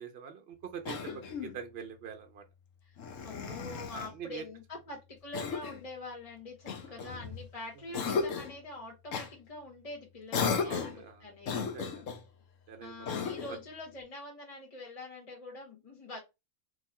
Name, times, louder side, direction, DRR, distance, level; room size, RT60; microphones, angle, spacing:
voice 1, 0.0-2.4 3.5-3.6 3.9-4.4 6.9-7.3 10.6-12.0 12.7-13.6, right 7 dB, 55° right, 0.7 m, -45 dB
Cough, 0.8-1.6 3.0-4.1 5.3-5.9 6.7-7.5 7.9-8.6 9.1-9.3 10.3-11.0 11.4-12.2 13.1-13.6, left 5 dB, 65° left, 1.1 m, -35 dB
voice 2, 1.0-1.3 2.8-10.8 11.2-11.6 12.8-16.2, left 2 dB, 30° left, 1.0 m, -45 dB
3.8 x 2.8 x 4.1 m
omnidirectional pair, 1.5 m